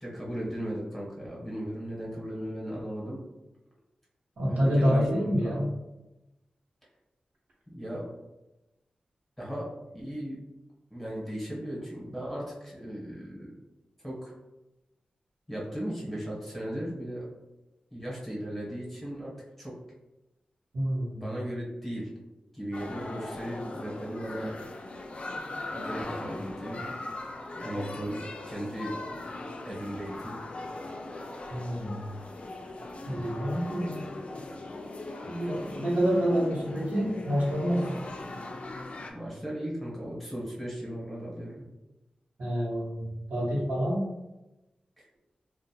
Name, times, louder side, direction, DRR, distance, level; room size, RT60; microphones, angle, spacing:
voice 1, 0.0-3.2 4.5-5.7 7.7-8.1 9.4-10.4 10.9-13.5 14.0-14.3 15.5-17.3 17.9-19.3 19.6-19.7 21.2-22.1 22.5-24.5 25.7-26.9 27.6-28.9 29.6-30.4 39.1-41.7 45.0-45.1, equal, 10° left, -5 dB, 1.0 m, -36 dB
voice 2, 4.4-5.7 20.7-21.2 31.5-32.0 33.1-34.0 35.2-37.9 42.4-44.0, equal, 70° right, -6 dB, 0.9 m, -27 dB
sound 1, 22.7-39.1, left 2 dB, 50° left, 0.3 m, -39 dB
2.5 x 2.1 x 2.7 m, 0.99 s
wide cardioid pair, 75°, 3 cm